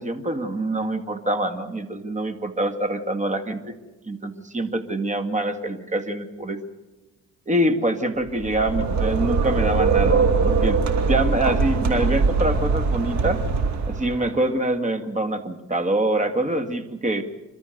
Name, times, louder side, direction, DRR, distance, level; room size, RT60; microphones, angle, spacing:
voice 1, 0.0-3.8 4.1-6.6 7.5-10.8 11.1-13.4 13.9-17.2, right 1 dB, 25° right, 9 dB, 2.0 m, -25 dB
sound 1, 8.3-14.3, right 4 dB, 65° right, 2.7 m, -22 dB
29.0 x 13.0 x 7.9 m, 1.1 s
cardioid pair, 90°, 30 cm